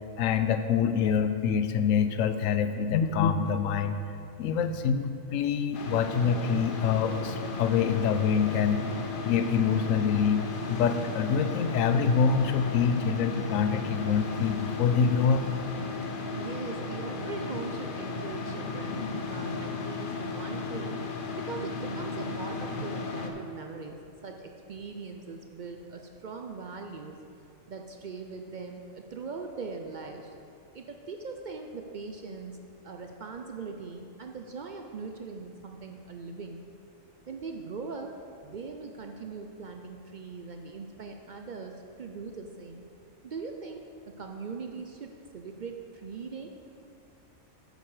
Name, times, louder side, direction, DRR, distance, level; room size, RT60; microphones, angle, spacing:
voice 1, 0.2-4.0 4.4-8.8 9.2-15.4, left 6 dB, 75° left, 9 dB, 1.0 m, -26 dB
sound 1, 5.7-23.3, left 3 dB, 50° left, 0.7 m, -35 dB
voice 2, 16.3-21.0 21.4-27.2 27.7-30.3 30.7-32.6 32.8-36.6 37.3-38.1 38.4-42.8 43.2-46.9, right 4 dB, 60° right, 4 dB, 0.5 m, -41 dB
9.6 x 6.6 x 4.8 m, 2.5 s
omnidirectional pair, 1.4 m